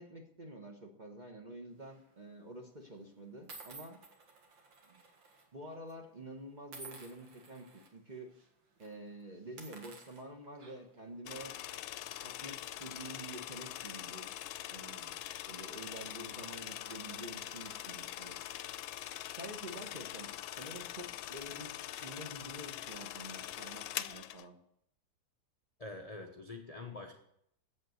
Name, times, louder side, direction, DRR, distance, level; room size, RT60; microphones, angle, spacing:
voice 1, 0.0-4.0 4.9-5.0 5.5-7.7 7.9-8.3 8.8-11.5 12.2-14.3 14.7-15.1 15.5-18.4 19.3-24.6, right 1 dB, 30° right, 3 dB, 1.1 m, -48 dB
sound 1, 1.8-2.1 2.9-3.0 3.5-5.4 5.7-5.9 6.7-7.9 8.3-8.5 8.8-8.9 9.4-11.0, right 3 dB, 70° right, 2.4 m, -53 dB
sound 2, 11.3-24.5, left 13 dB, 85° left, 1.4 m, -43 dB
voice 2, 25.8-27.1, left 3 dB, 40° left, 3 dB, 0.5 m, -45 dB
8.0 x 7.7 x 7.7 m, 0.72 s
omnidirectional pair, 2.1 m